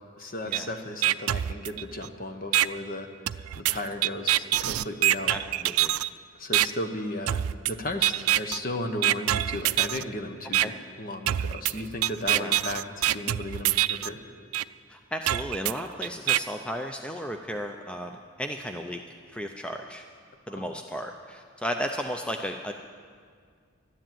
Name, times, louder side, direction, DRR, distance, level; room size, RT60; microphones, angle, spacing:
voice 1, 0.2-5.3 6.4-14.2 20.5-20.6, left 1 dB, 40° left, 6 dB, 1.0 m, -35 dB
sound 1, 0.5-0.6 1.0-2.1 2.5-2.7 3.3-6.1 6.5-6.7 7.3-7.7 8.0-8.6 9.0-10.0 10.5-10.6 11.3-14.1 14.5-14.6 15.3-16.4, right 13 dB, 85° right, 0.3 m, -25 dB
voice 2, 5.3-5.9 10.6-10.7 12.3-12.5 14.9-18.1 18.4-19.0 19.3-20.0 20.5-22.7, equal, 5° left, 4 dB, 0.4 m, -34 dB
12.5 x 10.0 x 9.1 m, 2.1 s
head